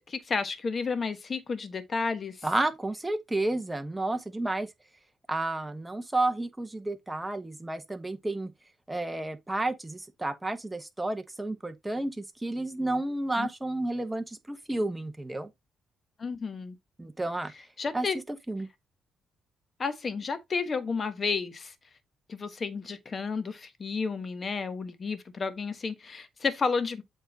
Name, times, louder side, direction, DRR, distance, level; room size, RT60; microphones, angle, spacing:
voice 1, 0.0-2.5 13.4-13.5 16.2-16.8 17.8-18.2 19.8-21.7 22.3-27.0, left 5 dB, 40° left, 1.3 m, -31 dB
voice 2, 2.4-4.7 5.3-8.5 8.9-15.5 17.0-17.5 17.9-18.7, right 2 dB, 10° right, 1.2 m, -31 dB
8.0 x 3.8 x 4.0 m
cardioid pair, 90°, 0 cm